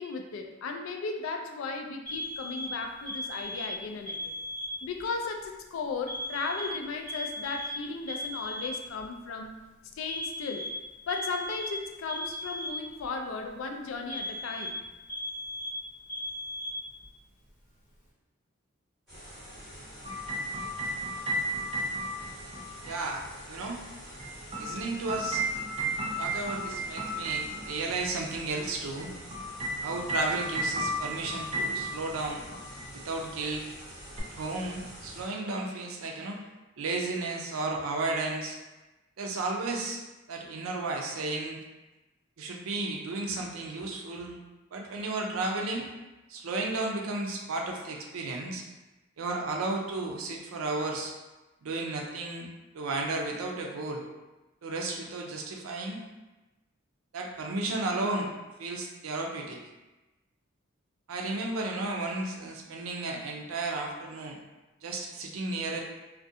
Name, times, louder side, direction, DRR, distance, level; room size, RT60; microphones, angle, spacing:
voice 1, 0.0-4.3 4.8-9.6 10.0-10.7 11.1-14.8, left 4 dB, 70° left, 3 dB, 0.3 m, -36 dB
Alarm, 2.1-5.0 6.1-9.0 10.1-13.1 14.1-17.1, left 1 dB, 40° left, 0.9 m, -37 dB
sound 1, 19.1-35.3, equal, ahead, 1.3 m, -46 dB
sound 2, 20.0-23.0 24.2-28.0 29.0-32.2 32.5-32.9 34.2-34.3, right 1 dB, 30° right, 0.4 m, -33 dB
voice 2, 22.8-23.8 24.6-25.4 26.2-29.1 29.8-32.4 32.9-33.7 34.3-36.4 36.8-38.6 39.2-40.0 40.3-41.6 42.4-44.4 44.7-45.9 46.3-48.6 49.2-51.1 51.6-52.5 52.7-54.0 54.6-56.0 57.1-58.3 58.6-59.6 61.1-64.4 64.8-65.8, right 2 dB, 90° right, 1 dB, 0.4 m, -33 dB
2.4 x 2.1 x 2.6 m, 1.1 s
head